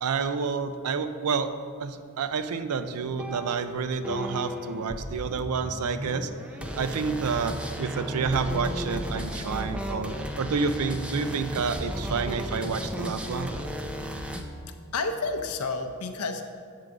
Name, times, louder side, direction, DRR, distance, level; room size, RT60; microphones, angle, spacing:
voice 1, 0.0-1.5 1.8-6.3 6.8-13.5, right 5 dB, 75° right, 10 dB, 0.4 m, -29 dB
sound 1, 3.0-14.4, equal, 5° right, 0.4 m, -34 dB
voice 2, 14.9-16.4, left 3 dB, 80° left, 6 dB, 0.6 m, -30 dB
7.8 x 3.8 x 5.9 m, 2.1 s
head